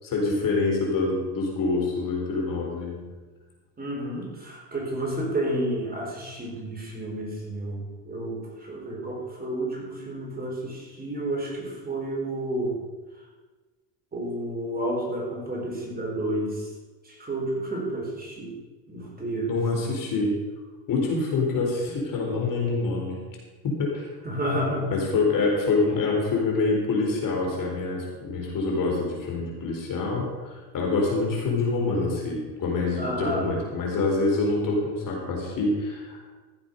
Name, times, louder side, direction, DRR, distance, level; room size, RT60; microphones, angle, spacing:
voice 1, 0.0-3.0 19.5-20.3 20.9-23.1 23.6-24.1 24.9-36.2, left 3 dB, 40° left, 0 dB, 4.3 m, -26 dB
voice 2, 3.8-12.8 14.1-16.7 17.0-18.6 18.9-19.9 24.2-24.9 33.0-33.6, right 1 dB, 20° right, -2 dB, 4.3 m, -31 dB
15.0 x 7.8 x 5.3 m, 1.3 s
supercardioid pair, 105°, 48 cm